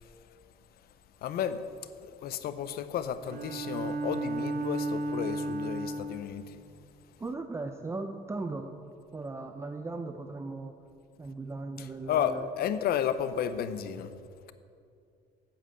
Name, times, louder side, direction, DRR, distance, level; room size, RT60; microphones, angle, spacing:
voice 1, 1.2-1.6 2.2-6.6 12.1-14.1, left 9 dB, 65° left, 12 dB, 0.7 m, -32 dB
Bowed string instrument, 3.3-6.3, right 2 dB, 65° right, 1.3 m, -33 dB
voice 2, 7.2-8.7 9.1-10.7 11.2-12.5, right 3 dB, 15° right, 6 dB, 0.5 m, -37 dB
8.8 x 7.6 x 7.8 m, 2.4 s
cardioid pair, 110°, 17 cm